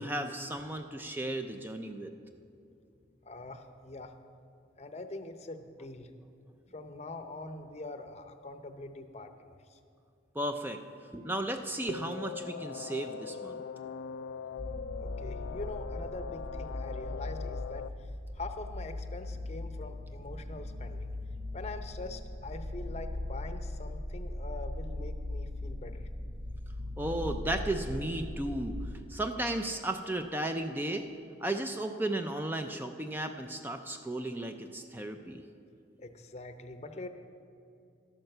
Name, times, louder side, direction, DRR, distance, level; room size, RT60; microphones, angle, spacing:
voice 1, 0.0-2.1 10.4-10.8 11.1-13.6 27.0-31.1 31.4-35.4, right 1 dB, 10° right, 6 dB, 0.4 m, -34 dB
voice 2, 3.2-4.1 4.8-6.1 6.7-9.8 15.0-21.1 21.5-26.1 36.0-37.1, left 2 dB, 35° left, 8 dB, 0.7 m, -44 dB
sound 1, 11.9-17.9, left 6 dB, 70° left, 0.3 m, -41 dB
sound 2, 14.6-28.9, left 1 dB, 70° right, 1.1 m, -39 dB
12.0 x 8.9 x 6.7 m, 2.6 s
head